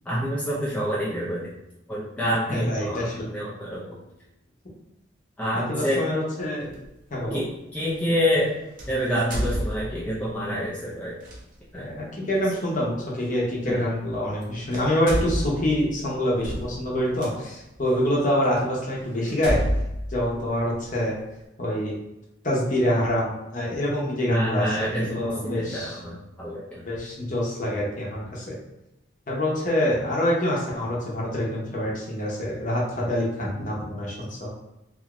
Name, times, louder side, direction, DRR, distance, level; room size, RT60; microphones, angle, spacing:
voice 1, 0.1-1.5 1.9-3.0 3.3-4.0 5.4-6.0 7.3-7.5 7.7-8.5 8.9-11.2 11.7-11.9 13.6-13.8 24.3-26.9, equal, 5° left, -7 dB, 0.4 m, -27 dB
voice 2, 2.5-3.3 5.5-6.7 7.1-7.4 11.7-19.6 20.1-21.1 21.6-21.9 22.4-26.0 26.9-28.5 29.3-34.5, left 1 dB, 45° left, -4 dB, 0.9 m, -26 dB
sound 1, 6.7-6.9 8.8-10.3 11.2-11.4 13.2-13.3 14.3-14.4 14.7-17.3 18.0-18.1 18.6-18.7 19.3-21.1, equal, 45° right, 0.6 m, -29 dB
2.7 x 2.4 x 3.0 m, 0.91 s
head